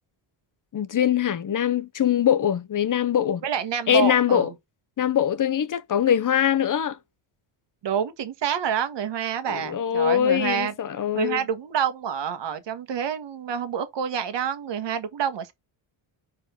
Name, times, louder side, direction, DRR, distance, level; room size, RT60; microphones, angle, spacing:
voice 1, 0.7-3.4 3.9-4.5 5.0-7.0 9.5-11.4, left 9 dB, 40° left, 0.9 m, -22 dB
voice 2, 3.4-4.5 7.8-10.7 11.1-15.5, right 8 dB, 55° right, 1.5 m, -28 dB
4.9 x 3.9 x 5.8 m
cardioid pair, 105°, 50 cm